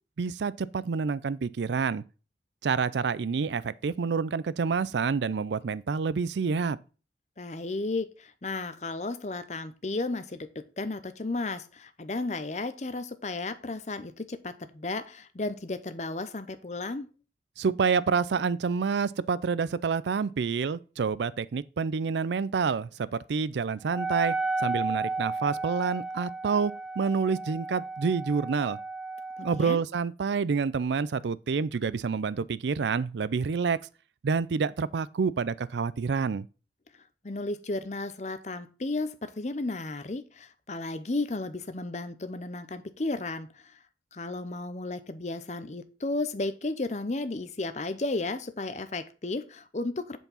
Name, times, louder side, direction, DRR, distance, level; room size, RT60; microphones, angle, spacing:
voice 1, 0.2-2.0 2.6-6.8 17.6-28.8 29.4-33.8 34.2-36.5, right 5 dB, 80° right, 0.4 m, -28 dB
voice 2, 7.4-17.1 29.4-29.8 37.2-43.8 44.1-50.2, left 2 dB, 40° left, 0.7 m, -34 dB
Wind instrument woodwind instrument, 23.9-29.6, right 3 dB, ahead, 0.3 m, -33 dB
8.1 x 4.6 x 5.5 m
head